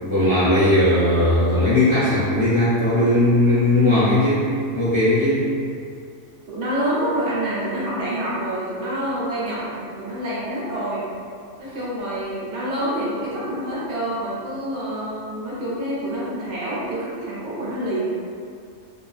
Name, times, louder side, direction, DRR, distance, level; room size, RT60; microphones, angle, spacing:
voice 1, 0.0-4.5 4.7-5.5, left 1 dB, 35° left, -13 dB, 0.5 m, -18 dB
voice 2, 6.5-11.1 11.6-18.1, right 1 dB, 70° right, -7 dB, 1.0 m, -27 dB
2.4 x 2.2 x 2.3 m, 2.3 s
omnidirectional pair, 1.3 m